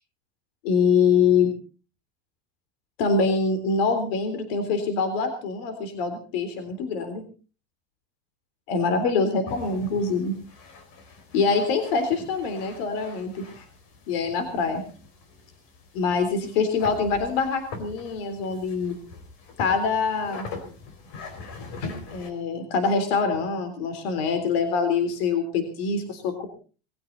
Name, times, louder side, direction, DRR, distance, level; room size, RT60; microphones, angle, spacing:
voice 1, 0.6-1.5 3.0-7.2 8.7-10.3 11.3-13.4 14.1-14.8 15.9-18.9 19.6-20.5 22.1-26.5, left 5 dB, 70° left, 8 dB, 3.7 m, -24 dB
sound 1, 9.4-22.3, left 4 dB, 50° left, 4.3 m, -42 dB
21.0 x 16.5 x 4.0 m, 0.37 s
cardioid pair, 175°, 31 cm